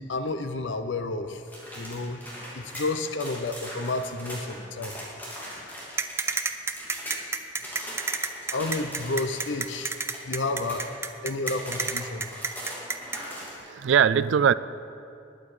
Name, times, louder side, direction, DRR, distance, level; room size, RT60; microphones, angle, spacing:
voice 1, 0.0-1.4 1.7-2.2 2.5-5.0 8.5-9.9 10.2-10.9 11.2-12.3, left 2 dB, 80° left, 9 dB, 0.7 m, -30 dB
sound 1, 1.5-6.4 6.7-7.2 7.6-11.1 11.5-13.5, equal, 10° left, 2.9 m, -40 dB
sound 2, 6.0-13.2, right 4 dB, 15° right, 0.5 m, -29 dB
voice 2, 13.6-14.5, right 7 dB, 80° right, 17 dB, 0.4 m, -21 dB
20.0 x 8.9 x 4.9 m, 2.6 s
head